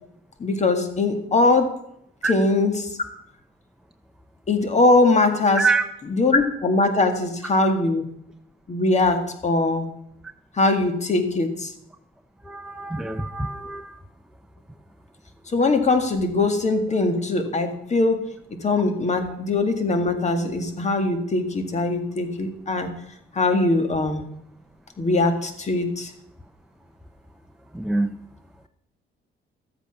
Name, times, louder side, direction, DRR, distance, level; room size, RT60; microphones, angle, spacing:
voice 1, 0.4-1.7 2.2-2.9 4.5-5.7 6.1-8.0 8.7-9.9 10.6-11.7 15.5-18.3 18.6-22.9 23.3-24.2 25.0-26.1, left 2 dB, 35° left, 7 dB, 2.0 m, -21 dB
voice 2, 12.5-14.0 27.7-28.1, right 3 dB, 5° right, 6 dB, 0.6 m, -25 dB
13.0 x 8.3 x 6.0 m, 0.74 s
cardioid pair, 90°, 20 cm